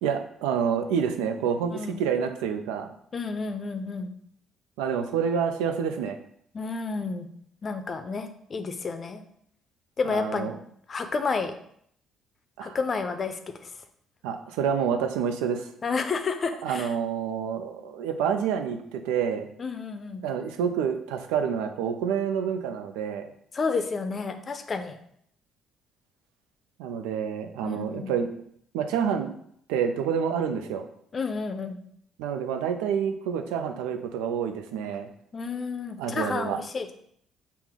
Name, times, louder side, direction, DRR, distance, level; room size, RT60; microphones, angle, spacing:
voice 1, 0.0-2.9 4.8-6.2 10.0-10.6 12.6-12.8 14.2-15.7 16.6-19.5 20.2-23.3 26.8-28.4 28.7-29.3 29.7-30.8 32.2-35.1 36.0-36.6, right 7 dB, 80° right, 6 dB, 0.4 m, -28 dB
voice 2, 1.7-2.0 3.1-4.1 6.5-7.3 7.6-9.2 10.0-10.5 10.9-11.6 12.6-13.4 15.8-16.9 19.6-20.2 23.5-25.0 27.6-28.1 31.1-31.8 35.3-36.9, left 4 dB, 40° left, 7 dB, 0.5 m, -30 dB
5.7 x 2.0 x 3.6 m, 0.67 s
hypercardioid pair, 55°, 0 cm